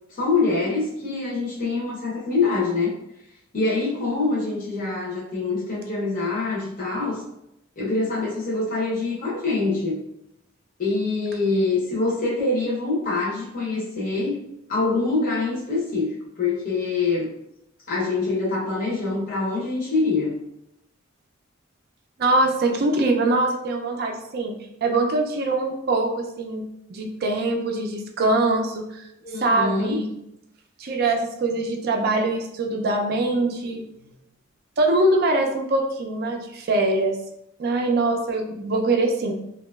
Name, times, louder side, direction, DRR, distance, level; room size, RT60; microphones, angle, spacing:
voice 1, 0.1-2.9 3.5-7.2 7.8-10.0 10.8-14.4 14.7-17.3 17.9-20.4 29.2-30.0, left 3 dB, 40° left, -6 dB, 0.6 m, -25 dB
voice 2, 22.2-24.5 24.8-26.6 26.9-29.0 29.4-30.1 30.8-33.8 34.8-37.2 37.6-39.3, right 2 dB, 50° right, 3 dB, 0.3 m, -23 dB
2.8 x 2.2 x 2.2 m, 0.81 s
head